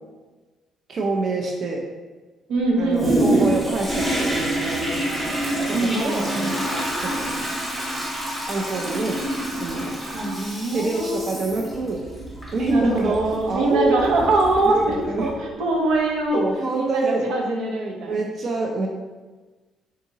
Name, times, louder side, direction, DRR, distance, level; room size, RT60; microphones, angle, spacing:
voice 1, 0.9-1.8 2.8-5.0 5.7-6.6 7.0-7.6 8.5-9.2 9.6-10.0 10.7-12.0 12.5-14.1 14.7-15.3 16.3-17.3 18.1-18.9, right 3 dB, 45° right, 0 dB, 0.4 m, -26 dB
voice 2, 2.5-3.5 5.7-6.6 10.0-11.3 12.7-16.4 16.7-18.1, right 2 dB, 85° right, 0 dB, 0.6 m, -23 dB
Toilet flush, 3.0-15.4 15.9-16.0, right 1 dB, 10° right, 0.8 m, -27 dB
3.7 x 2.8 x 2.7 m, 1.3 s
cardioid pair, 135°, 0 cm